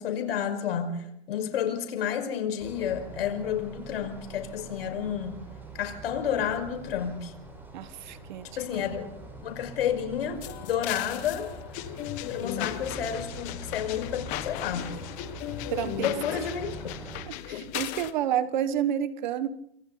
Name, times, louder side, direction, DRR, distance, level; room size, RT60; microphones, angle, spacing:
voice 1, 0.0-5.4 5.7-7.3 8.6-9.1 9.4-11.5 12.3-15.0 16.0-16.9 17.5-17.6, left 8 dB, 65° left, 7 dB, 5.5 m, -31 dB
sound 1, 2.6-17.2, right 1 dB, 5° right, 4.7 m, -43 dB
voice 2, 7.7-8.5 15.7-16.1 17.3-19.5, right 10 dB, 45° right, 12 dB, 1.5 m, -29 dB
sound 2, 10.4-18.1, left 14 dB, 25° left, 1.1 m, -37 dB
27.5 x 27.0 x 4.1 m, 0.73 s
supercardioid pair, 170°, 32 cm